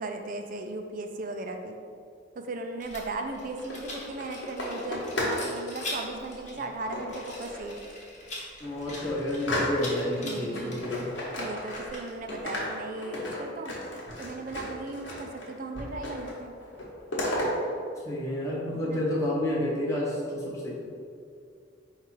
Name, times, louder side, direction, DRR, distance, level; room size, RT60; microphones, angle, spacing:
voice 1, 0.0-1.8 2.4-7.8 10.2-10.8 11.4-13.8 14.2-16.5 18.7-19.0, right 2 dB, 45° right, 5 dB, 0.4 m, -37 dB
Rattle, 2.8-12.4, left 2 dB, 40° left, 1.0 m, -42 dB
sound 1, 3.5-5.4 5.7-6.1 6.9-7.7 8.2-8.3 8.6-10.2 10.5-12.0 12.3-15.5 15.7-16.4 16.6-17.5, left 1 dB, 75° left, 1.1 m, -34 dB
voice 2, 8.6-11.1 18.0-20.7, left 1 dB, 15° left, -7 dB, 0.9 m, -30 dB
4.7 x 2.4 x 4.5 m, 2.4 s
head